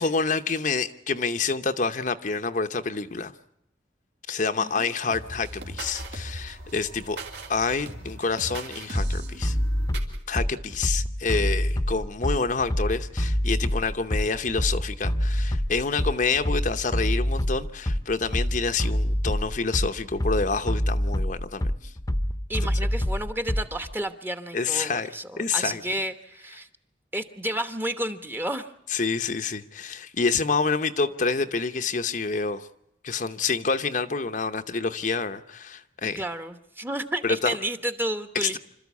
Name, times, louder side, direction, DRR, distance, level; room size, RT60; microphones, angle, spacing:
voice 1, 0.0-3.3 4.3-7.2 7.5-9.6 10.3-21.9 24.5-25.1 25.4-25.8 28.9-32.7 33.0-36.2 37.2-37.6 38.4-38.6, left 4 dB, 45° left, 0.8 m, -27 dB
sound 1, 5.1-10.2, right 2 dB, 70° right, 3.0 m, -39 dB
Bass drum, 8.9-23.9, equal, 20° left, 0.9 m, -26 dB
voice 2, 22.5-26.7 27.1-28.7 36.1-38.6, right 1 dB, 10° right, 1.1 m, -31 dB
26.5 x 13.5 x 8.4 m
head